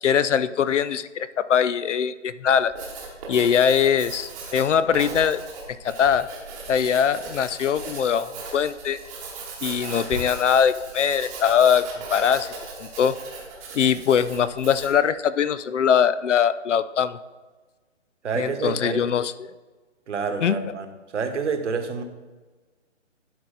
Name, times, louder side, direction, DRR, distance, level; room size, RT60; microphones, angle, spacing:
voice 1, 0.0-2.7 3.3-5.4 5.8-6.3 6.7-9.0 9.6-11.8 12.1-12.5 12.8-13.1 13.7-17.2 18.4-19.3 20.4-20.6, left 8 dB, 70° left, 15 dB, 0.6 m, -21 dB
Writing, 2.6-15.0, right 4 dB, 15° right, 1.0 m, -37 dB
voice 2, 18.2-19.0 20.1-20.9 21.1-22.0, right 5 dB, 65° right, 7 dB, 1.2 m, -28 dB
11.5 x 4.6 x 3.9 m, 1.3 s
hypercardioid pair, 155°, 38 cm